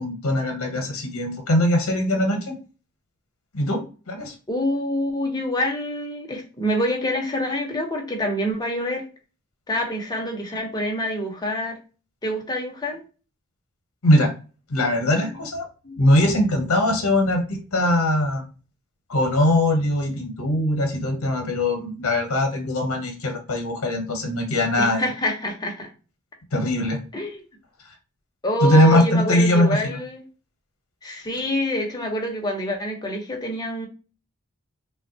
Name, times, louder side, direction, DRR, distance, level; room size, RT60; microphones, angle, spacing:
voice 1, 0.0-2.5 3.5-4.3 14.0-14.3 14.7-15.7 16.0-18.4 19.1-25.0 26.5-27.0 28.6-30.0, left 1 dB, 75° left, 3 dB, 0.8 m, -21 dB
voice 2, 4.5-9.0 9.7-11.8 12.2-13.0 15.2-15.4 15.8-16.0 24.8-25.9 27.1-27.4 28.4-30.2 31.0-33.9, equal, 20° left, 1 dB, 0.7 m, -26 dB
3.4 x 2.2 x 2.6 m, 0.34 s
head